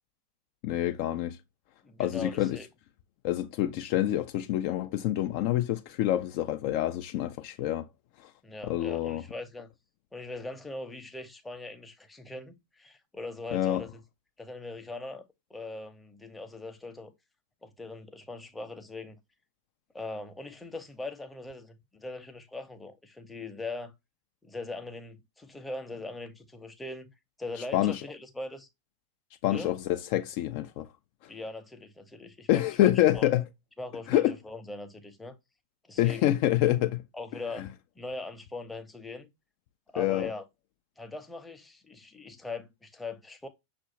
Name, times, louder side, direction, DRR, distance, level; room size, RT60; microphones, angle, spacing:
voice 1, 0.6-1.4 2.0-2.6 3.2-7.9 8.2-8.3 8.6-9.2 13.5-13.8 27.7-28.0 29.4-30.9 32.5-33.5 34.1-34.4 36.0-37.0 37.6-37.7 40.0-40.3, left 13 dB, 45° left, 0.3 m, -27 dB
voice 2, 1.8-2.7 8.4-9.7 10.1-14.0 14.4-15.2 15.5-17.1 17.6-19.2 19.9-23.9 24.4-27.1 27.4-28.7 29.5-29.7 31.3-33.3 33.8-35.3 35.8-36.3 37.1-37.7 38.0-39.3 39.9-40.4 41.0-43.5, left 2 dB, 5° left, 0.7 m, -40 dB
6.0 x 2.5 x 2.9 m
figure-of-eight pair, 90°, 0 cm